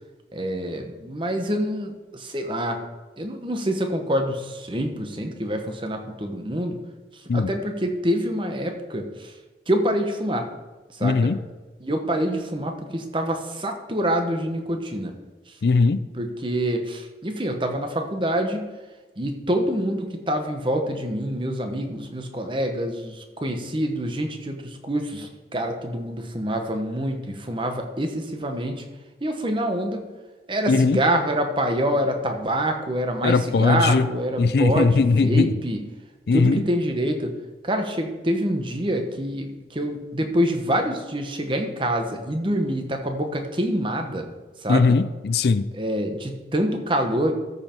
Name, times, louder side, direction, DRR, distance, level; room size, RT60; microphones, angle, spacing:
voice 1, 0.3-2.8 3.2-6.8 7.3-9.3 9.7-10.5 10.9-11.3 11.8-15.1 16.1-18.7 19.2-28.8 29.2-30.0 30.5-35.8 36.3-37.3 37.6-44.2 44.6-45.0 45.7-47.3, equal, 30° right, 5 dB, 1.0 m, -26 dB
voice 2, 11.0-11.4 15.6-16.0 30.7-31.0 33.2-34.1 34.4-35.5 36.3-36.6 44.7-45.7, left 4 dB, 65° left, 13 dB, 0.4 m, -19 dB
13.5 x 5.5 x 4.5 m, 1.2 s
head